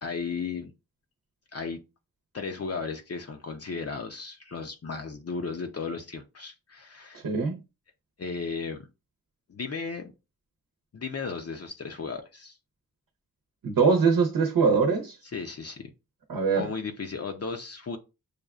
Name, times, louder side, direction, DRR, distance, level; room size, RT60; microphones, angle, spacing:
voice 1, 0.0-0.7 1.5-1.8 2.3-7.2 8.2-8.9 9.5-10.1 10.9-12.6 15.3-15.9 16.5-18.0, left 5 dB, 45° left, 0.6 m, -35 dB
voice 2, 7.1-7.6 13.6-15.2 16.3-16.7, right 5 dB, 70° right, 0.8 m, -23 dB
6.4 x 2.3 x 2.4 m
cardioid pair, 50°, 35 cm